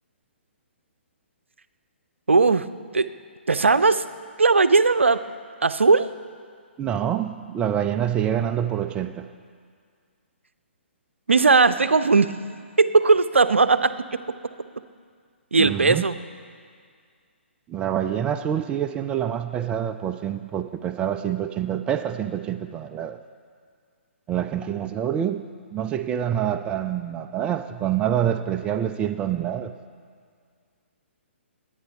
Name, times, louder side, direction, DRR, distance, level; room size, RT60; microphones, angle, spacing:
voice 1, 2.3-2.7 2.9-3.1 3.5-4.0 4.4-5.2 5.6-6.1 11.3-12.3 12.8-14.2 15.5-16.2, right 4 dB, 75° right, 12 dB, 0.6 m, -18 dB
voice 2, 6.8-9.3 15.6-16.1 17.7-23.2 24.3-29.7, right 10 dB, 15° right, 9 dB, 0.4 m, -26 dB
21.0 x 9.1 x 5.6 m, 2.1 s
figure-of-eight pair, 130°, 7 cm